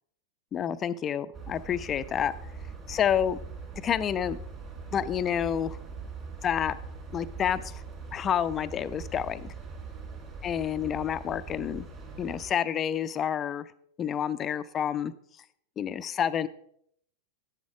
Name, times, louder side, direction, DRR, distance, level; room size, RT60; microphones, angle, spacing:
voice 1, 0.5-2.3 2.9-3.4 3.8-4.4 4.9-5.8 6.4-6.8 7.1-7.8 8.1-9.5 10.4-11.9 12.2-13.7 14.0-15.1 15.8-16.5, left 9 dB, 25° left, 14 dB, 0.5 m, -29 dB
sound 1, 1.3-12.5, right 4 dB, 30° right, 3.7 m, -42 dB
11.0 x 8.3 x 4.9 m, 0.68 s
figure-of-eight pair, 90°, 0 cm